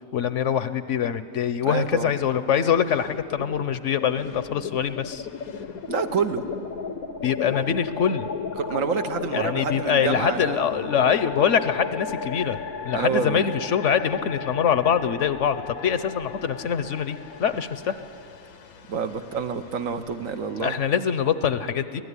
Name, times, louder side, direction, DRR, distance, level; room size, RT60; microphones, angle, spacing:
voice 1, 0.1-5.3 7.2-8.3 9.3-12.6 12.8-18.0 20.6-22.0, left 8 dB, 65° left, 12 dB, 1.0 m, -24 dB
voice 2, 1.6-2.1 5.9-6.4 8.6-10.9 12.9-13.4 18.9-20.7, right 6 dB, 70° right, 8 dB, 1.4 m, -28 dB
sound 1, 1.7-2.5 2.8-20.8, left 6 dB, 90° left, 1.4 m, -36 dB
23.5 x 16.0 x 9.7 m, 2.6 s
omnidirectional pair, 1.5 m